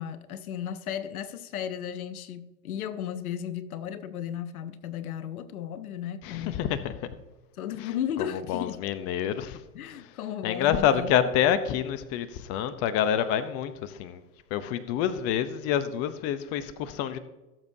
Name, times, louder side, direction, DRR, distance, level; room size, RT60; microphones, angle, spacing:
voice 1, 0.0-6.6 7.6-8.8 9.7-11.1, left 9 dB, 70° left, 0.9 m, -35 dB
voice 2, 6.2-7.1 7.8-7.9 8.2-9.6 9.9-10.1 10.4-14.2 14.5-17.2, left 9 dB, 35° left, 0.7 m, -27 dB
17.0 x 7.2 x 2.7 m
hypercardioid pair, 105°, 45 cm